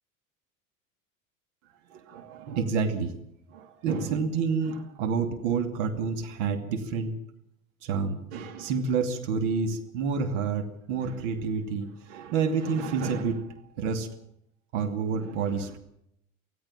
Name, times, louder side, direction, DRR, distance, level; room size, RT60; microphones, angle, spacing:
voice 1, 1.9-3.1 3.5-7.2 7.8-13.5 13.8-14.1 14.7-15.8, right 5 dB, 55° right, 6 dB, 2.6 m, -29 dB
25.0 x 16.5 x 7.4 m, 0.77 s
figure-of-eight pair, 75°, 42 cm